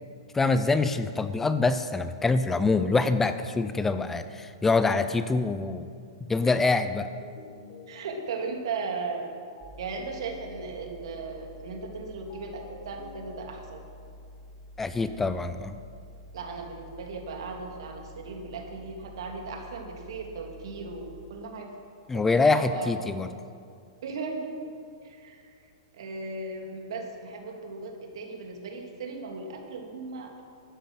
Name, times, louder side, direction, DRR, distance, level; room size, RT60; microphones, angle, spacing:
voice 1, 0.3-5.9 6.3-7.1 14.8-15.8 22.1-23.3, left 3 dB, 10° left, 11 dB, 0.5 m, -25 dB
sound 1, 6.8-8.5 9.6-11.3 12.3-14.0, left 2 dB, 55° left, 2.3 m, -50 dB
voice 2, 7.9-9.3 9.8-13.8 16.3-21.7 22.1-22.9 24.0-24.5 25.0-25.5 25.9-30.4, right 4 dB, 70° right, 2 dB, 2.5 m, -37 dB
sound 2, 9.6-21.3, left 1 dB, 20° right, 1.0 m, -48 dB
12.5 x 10.5 x 6.0 m, 2.3 s
hypercardioid pair, 135°, 3 cm